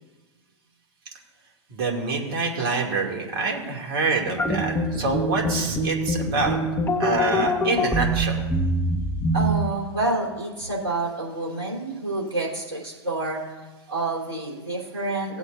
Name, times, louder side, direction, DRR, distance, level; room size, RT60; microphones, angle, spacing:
voice 1, 1.7-6.6 7.0-8.4, right 4 dB, 60° right, 1 dB, 2.4 m, -26 dB
sound 1, 4.4-9.6, equal, 15° left, 1.4 m, -24 dB
voice 2, 9.3-13.4 13.9-15.4, right 2 dB, 80° right, -3 dB, 3.6 m, -28 dB
18.0 x 8.1 x 2.6 m, 1.2 s
hypercardioid pair, 90°, 15 cm